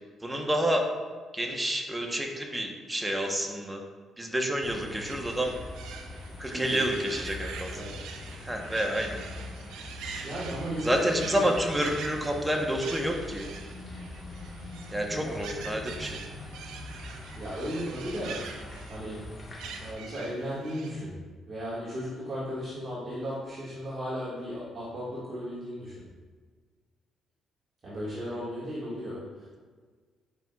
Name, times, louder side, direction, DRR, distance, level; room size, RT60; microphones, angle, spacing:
voice 1, 0.2-0.8 1.3-3.8 4.2-5.5 6.4-7.7 8.4-9.2 10.8-13.5 14.9-16.2, equal, 10° right, 2 dB, 1.0 m, -29 dB
sound 1, 4.6-19.9, left 2 dB, 30° left, 1.4 m, -43 dB
sound 2, 5.0-20.9, right 5 dB, 90° right, 0.6 m, -44 dB
voice 2, 6.5-7.3 7.7-7.9 10.2-11.5 15.1-15.4 17.4-18.4 18.9-19.2 19.8-21.2 21.5-26.0 27.8-29.6, equal, 40° right, -8 dB, 1.7 m, -36 dB
9.0 x 5.4 x 2.4 m, 1.5 s
cardioid pair, 90°, 0 cm